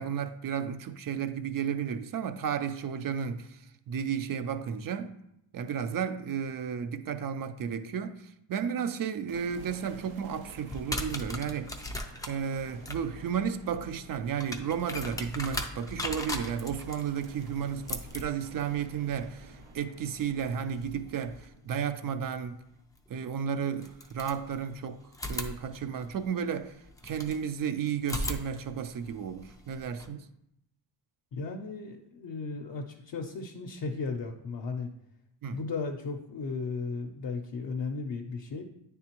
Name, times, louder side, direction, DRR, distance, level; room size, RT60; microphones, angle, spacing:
voice 1, 0.0-5.1 5.5-11.8 12.2-22.6 23.1-25.0 25.3-26.8 27.0-30.3 35.4-35.6, right 7 dB, 50° right, 0.4 m, -33 dB
sound 1, 9.3-23.6, right 3 dB, 90° right, 0.8 m, -52 dB
sound 2, 10.7-21.5 23.0-23.1 23.8-24.8 25.1-27.4 28.0-30.1, left 1 dB, 10° left, 0.4 m, -39 dB
voice 2, 31.3-34.9 35.5-38.6, left 4 dB, 50° left, 0.6 m, -35 dB
9.1 x 3.5 x 2.9 m
cardioid pair, 125°, 45 cm